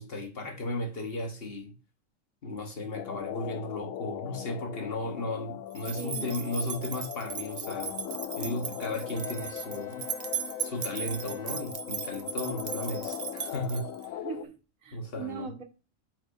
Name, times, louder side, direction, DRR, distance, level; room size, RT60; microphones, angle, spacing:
voice 1, 0.0-1.7 2.4-8.0 8.4-10.0 10.6-13.9 14.9-15.5, left 1 dB, 50° left, 1.4 m, -35 dB
sound 1, 2.9-14.5, left 10 dB, 80° left, 1.0 m, -39 dB
sound 2, 5.8-14.1, right 7 dB, 50° right, 0.8 m, -37 dB
voice 2, 6.0-6.4 14.2-15.6, right 5 dB, 85° right, 1.7 m, -40 dB
Bowed string instrument, 9.1-12.4, left 1 dB, 25° left, 1.6 m, -53 dB
8.9 x 4.6 x 2.6 m
omnidirectional pair, 1.4 m